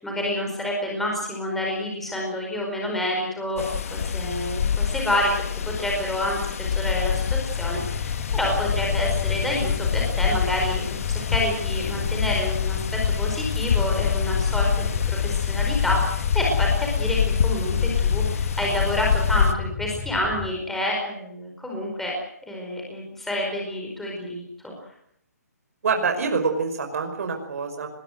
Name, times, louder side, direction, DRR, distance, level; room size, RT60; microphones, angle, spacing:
voice 1, 0.0-5.5 5.8-12.8 13.0-17.8 18.0-22.1 22.5-24.7, left 1 dB, 5° left, -2 dB, 5.0 m, -28 dB
sound 1, 3.6-19.5, left 7 dB, 55° left, 1.8 m, -25 dB
sound 2, 7.1-20.5, left 7 dB, 30° left, 8.0 m, -35 dB
voice 2, 25.8-27.9, right 5 dB, 60° right, 5 dB, 5.3 m, -25 dB
22.5 x 21.5 x 8.0 m, 0.71 s
hypercardioid pair, 155°, 9 cm